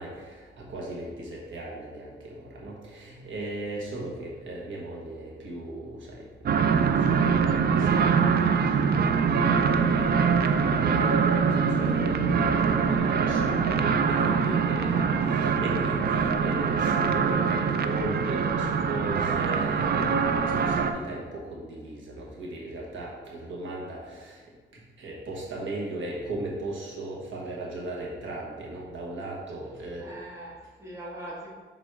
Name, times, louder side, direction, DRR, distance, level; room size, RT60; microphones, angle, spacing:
voice 1, 0.0-24.4 24.7-30.1, right 1 dB, 70° right, -3 dB, 1.4 m, -37 dB
sound 1, 6.5-20.9, right 6 dB, 50° right, 0.4 m, -24 dB
voice 2, 14.7-15.1 30.0-31.5, right 1 dB, 15° right, -5 dB, 1.4 m, -41 dB
6.1 x 4.0 x 4.6 m, 1.4 s
wide cardioid pair, 140°, 20 cm